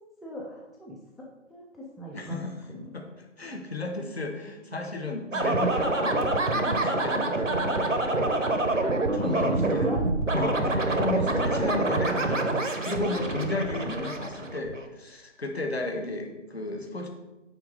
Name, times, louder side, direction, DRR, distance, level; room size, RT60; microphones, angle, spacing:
voice 1, 0.2-1.0 1.5-2.4 2.7-2.9 5.3-5.8 9.2-10.0, right 1 dB, ahead, -3 dB, 0.4 m, -38 dB
voice 2, 2.1-2.5 2.9-8.0 9.1-9.9 10.3-17.1, left 2 dB, 55° left, 3 dB, 1.1 m, -33 dB
sound 1, 5.3-14.9, right 2 dB, 90° right, 1.0 m, -26 dB
5.8 x 4.2 x 5.1 m, 1.0 s
figure-of-eight pair, 155°, 37 cm